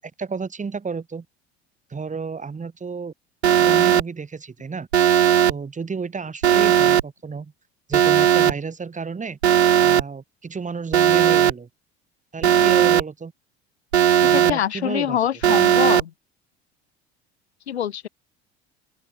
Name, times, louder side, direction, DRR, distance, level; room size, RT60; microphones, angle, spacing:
voice 1, 0.0-1.3 1.9-3.1 3.6-4.9 5.5-7.5 7.9-9.4 9.8-11.7 12.3-13.3 14.2-15.2, right 5 dB, 25° right, 7.0 m, -31 dB
Alarm, 3.4-4.0 4.9-5.5 6.4-7.0 7.9-8.5 9.4-10.0 10.9-11.5 12.4-13.0 13.9-14.5 15.4-16.0, right 10 dB, 80° right, 1.2 m, -16 dB
voice 2, 14.3-16.1 17.7-18.1, left 10 dB, 75° left, 2.0 m, -25 dB
open air
figure-of-eight pair, 65°, 32 cm